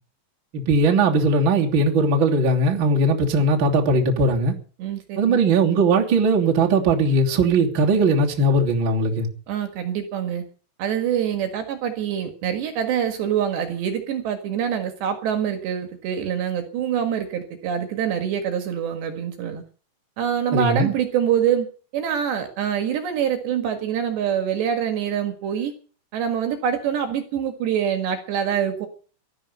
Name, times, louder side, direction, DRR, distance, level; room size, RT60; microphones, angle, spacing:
voice 1, 0.5-4.5 5.2-9.3 20.5-20.9, right 2 dB, 30° right, 2.8 m, -19 dB
voice 2, 4.8-5.4 9.5-10.5 10.8-19.6 20.2-25.7 26.1-28.9, right 8 dB, 65° right, 3.6 m, -25 dB
18.0 x 13.0 x 5.5 m
omnidirectional pair, 5.8 m